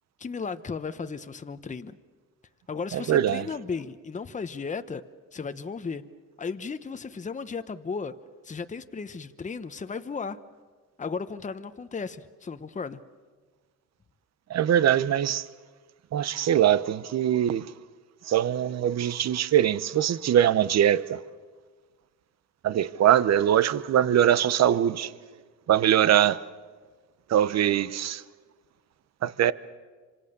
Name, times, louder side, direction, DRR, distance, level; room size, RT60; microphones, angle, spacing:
voice 1, 0.2-2.0 2.7-5.0 5.3-6.0 6.4-8.1 8.4-10.4 11.0-13.0, left 5 dB, 25° left, 1.0 m, -35 dB
voice 2, 2.9-3.4 14.5-15.5 16.1-17.7 18.2-21.2 22.6-25.1 25.7-26.4 27.3-28.2 29.2-29.5, right 10 dB, 60° right, 0.9 m, -22 dB
26.5 x 26.0 x 6.8 m
cardioid pair, 90°, 30 cm